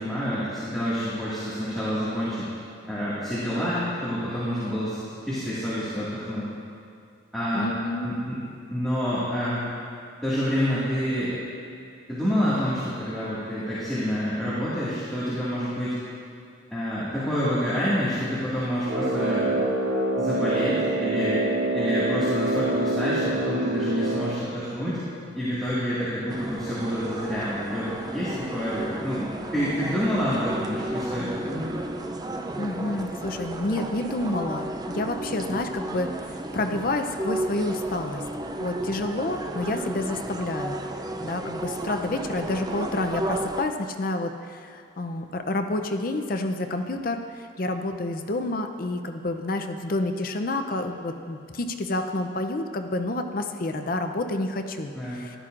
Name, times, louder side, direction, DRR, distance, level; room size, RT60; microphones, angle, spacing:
voice 1, 0.0-2.5 2.9-6.5 7.3-7.7 8.0-8.4 8.7-9.7 10.2-11.4 12.1-16.0 16.7-19.6 20.2-21.4 21.7-25.0 25.3-31.7 54.9-55.2, equal, ahead, -13 dB, 1.9 m, -28 dB
voice 2, 7.5-8.2 32.6-38.2 38.6-55.4, left 2 dB, 45° left, 6 dB, 0.5 m, -29 dB
Brass instrument, 18.8-24.4, right 2 dB, 90° right, 1.0 m, -26 dB
sound 1, 26.3-43.6, right 1 dB, 20° right, 0.4 m, -33 dB
13.5 x 11.5 x 2.5 m, 2.5 s
head